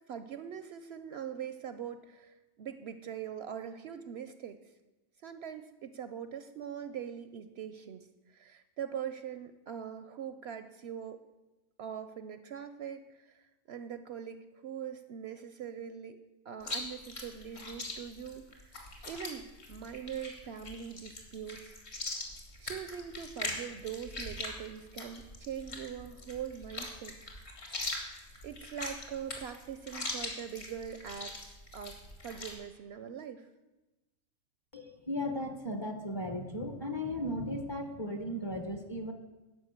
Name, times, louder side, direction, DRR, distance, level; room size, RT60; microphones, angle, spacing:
voice 1, 0.1-4.7 5.2-11.2 11.8-16.2 16.5-21.8 22.6-27.2 28.4-33.5, right 8 dB, 65° right, 11 dB, 0.7 m, -42 dB
Chewing mastication, 16.6-32.5, left 2 dB, 55° left, 2.1 m, -41 dB
voice 2, 34.7-39.1, left 1 dB, 25° left, 5 dB, 0.7 m, -36 dB
11.5 x 5.2 x 7.9 m, 1.1 s
omnidirectional pair, 1.4 m